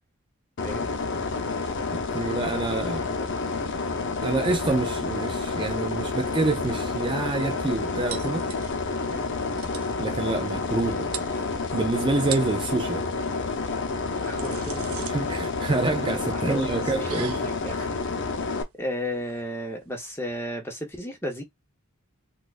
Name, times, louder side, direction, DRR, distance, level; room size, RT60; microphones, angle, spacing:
sound 1, 0.6-18.6, left 3 dB, 55° left, 0.7 m, -29 dB
voice 1, 1.9-3.0 4.2-8.5 10.0-11.1 11.7-13.0 15.1-17.4, right 3 dB, 25° right, 0.4 m, -27 dB
voice 2, 2.9-3.3 9.0-9.2 14.2-15.1 16.1-18.1 18.5-21.4, equal, 10° left, 0.8 m, -34 dB
sound 2, 8.1-9.0 9.3-9.4 9.6-10.0 10.8-10.9 11.1-11.8 12.2-12.6 13.8-20.5, right 8 dB, 80° right, 0.7 m, -40 dB
4.2 x 2.4 x 2.4 m
head